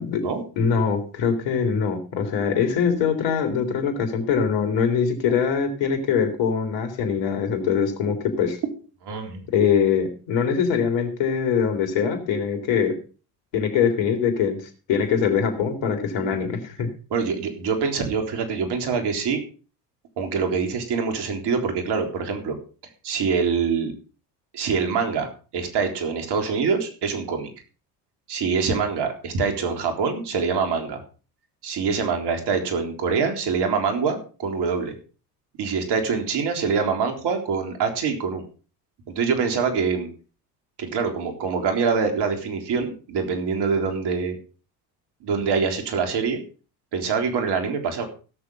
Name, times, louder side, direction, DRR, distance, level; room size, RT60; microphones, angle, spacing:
voice 1, 0.6-8.6 9.5-13.0 13.5-14.6 14.9-16.9, left 6 dB, 65° left, 6 dB, 3.8 m, -23 dB
voice 2, 9.0-9.4 16.2-16.3 17.1-19.4 20.2-22.6 23.0-23.9 24.5-27.5 28.3-31.0 31.6-34.9 35.6-38.4 39.1-40.1 40.8-44.4 45.2-46.4 46.9-48.1, right 5 dB, 55° right, 5 dB, 3.8 m, -25 dB
17.0 x 7.0 x 5.5 m, 0.37 s
hypercardioid pair, 75°, 47 cm